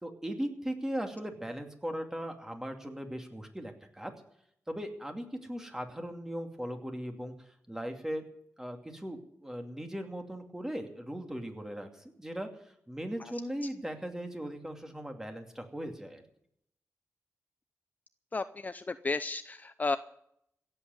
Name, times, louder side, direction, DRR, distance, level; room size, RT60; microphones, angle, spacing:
voice 1, 0.0-4.1 4.7-7.3 7.7-8.2 8.6-12.5 12.9-16.2, equal, 10° right, 4 dB, 2.5 m, -38 dB
voice 2, 18.3-20.0, left 3 dB, 30° left, 12 dB, 0.6 m, -33 dB
16.5 x 8.0 x 9.7 m, 0.72 s
wide cardioid pair, 95°, 5 cm